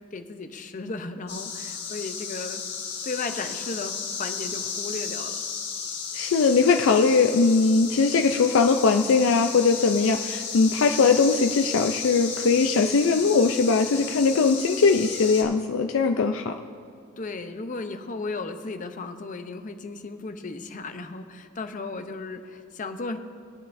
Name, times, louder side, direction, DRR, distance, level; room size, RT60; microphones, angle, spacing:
voice 1, 0.1-2.6 3.0-5.4 17.2-23.2, left 3 dB, 40° left, 7 dB, 0.6 m, -35 dB
sound 1, 1.3-15.4, left 6 dB, 55° left, 1.6 m, -34 dB
voice 2, 6.1-16.5, left 4 dB, 85° left, 5 dB, 0.4 m, -20 dB
21.0 x 8.2 x 2.6 m, 2.2 s
head